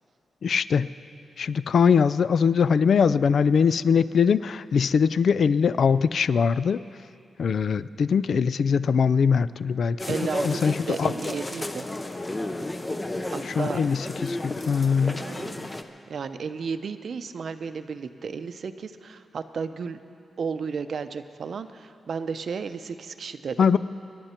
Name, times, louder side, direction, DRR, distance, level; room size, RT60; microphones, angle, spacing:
voice 1, 0.4-0.9 1.4-6.8 7.4-11.1 13.5-15.2 23.6-23.8, left 6 dB, 60° left, 16 dB, 0.3 m, -22 dB
sound 1, 10.0-15.8, left 1 dB, 20° left, 0.7 m, -33 dB
voice 2, 10.1-11.9 13.3-13.8 15.2-15.7 16.1-20.0 20.4-23.7, right 5 dB, 60° right, 10 dB, 0.6 m, -33 dB
27.0 x 11.0 x 4.4 m, 2.5 s
wide cardioid pair, 135°, 0 cm